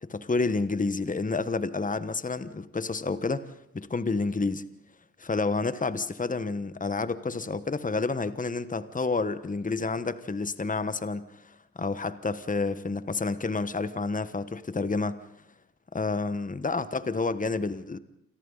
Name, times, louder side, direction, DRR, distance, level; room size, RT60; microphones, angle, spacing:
voice 1, 0.0-4.6 5.2-15.2 15.9-18.0, left 3 dB, 20° left, 13 dB, 1.3 m, -29 dB
28.5 x 23.0 x 4.0 m, 0.81 s
hypercardioid pair, 45°, 42 cm